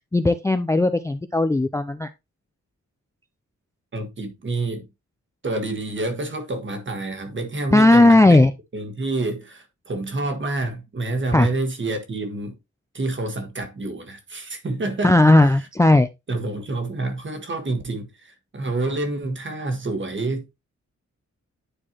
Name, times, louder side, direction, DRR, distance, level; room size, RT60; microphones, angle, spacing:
voice 1, 0.1-2.1 7.7-8.5 11.3-11.5 15.0-16.1, left 2 dB, 10° left, 0.4 m, -16 dB
voice 2, 3.9-4.9 5.4-8.4 8.7-12.6 12.9-15.2 15.6-15.7 16.3-20.5, right 2 dB, 40° right, 1.5 m, -28 dB
9.9 x 4.6 x 2.9 m
wide cardioid pair, 145°, 30 cm